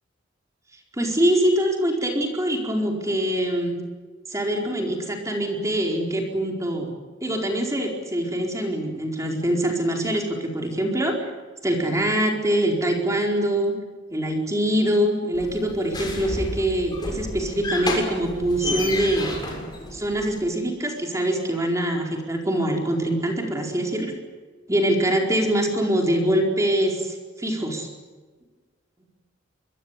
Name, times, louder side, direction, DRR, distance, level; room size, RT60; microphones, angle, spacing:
voice 1, 1.0-3.7 4.3-6.9 7.2-11.1 11.6-13.7 14.1-19.4 19.9-24.1 24.7-27.9, right 1 dB, 15° right, 1 dB, 4.5 m, -24 dB
sound 1, 15.3-20.4, left 2 dB, 20° left, 6.8 m, -31 dB
26.0 x 22.0 x 8.4 m, 1.4 s
head